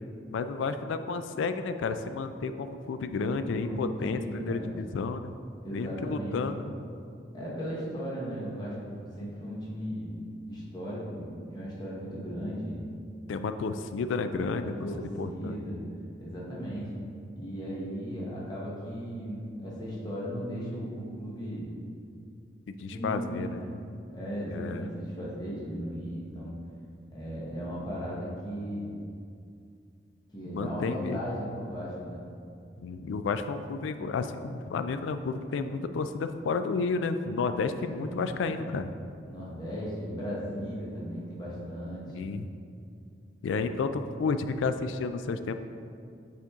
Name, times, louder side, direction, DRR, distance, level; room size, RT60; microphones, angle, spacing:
voice 1, 0.3-5.3 5.7-6.7 13.3-14.7 15.2-15.6 22.7-23.6 24.5-24.9 30.4-31.2 32.8-38.9 42.1-42.5 43.4-45.5, left 4 dB, 90° left, 9 dB, 0.3 m, -31 dB
voice 2, 4.2-4.8 5.6-6.4 7.3-10.1 10.5-12.8 14.6-15.8 16.2-16.9 17.3-21.7 22.8-23.7 24.1-26.6 27.1-28.9 30.3-32.3 37.7-38.7 39.2-42.1, equal, 20° left, -6 dB, 1.1 m, -36 dB
6.1 x 4.3 x 3.6 m, 2.4 s
head